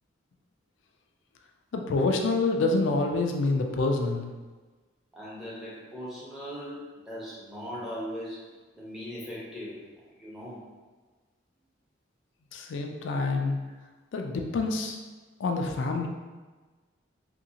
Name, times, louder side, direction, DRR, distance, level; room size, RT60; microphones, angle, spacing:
voice 1, 1.7-4.3 12.5-13.6 14.1-15.0 15.4-16.1, left 3 dB, 80° left, 3 dB, 0.4 m, -27 dB
voice 2, 5.1-9.8 10.1-10.6, equal, ahead, -8 dB, 0.8 m, -39 dB
2.8 x 2.6 x 2.8 m, 1.3 s
head